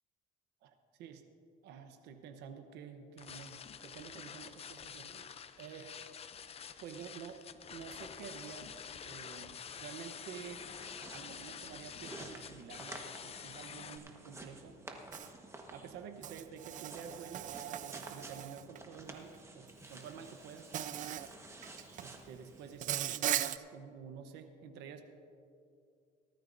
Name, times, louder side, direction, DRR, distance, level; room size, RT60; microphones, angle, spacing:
voice 1, 1.6-5.3 5.6-5.9 6.8-7.4 7.7-8.8 9.0-10.6 11.1-14.8 15.7-20.8 22.0-25.0, right 7 dB, 85° right, 6 dB, 1.0 m, -50 dB
sound 1, 3.2-14.0, left 7 dB, 35° left, 0.6 m, -48 dB
sound 2, 10.4-22.8, right 2 dB, 15° right, 1.3 m, -52 dB
Insect, 15.1-15.3 16.2-18.8 19.9-20.1 20.7-21.3 21.6-22.1 22.8-23.6, right 11 dB, 50° right, 0.4 m, -38 dB
18.5 x 13.0 x 2.7 m, 2.5 s
cardioid pair, 110°, 17 cm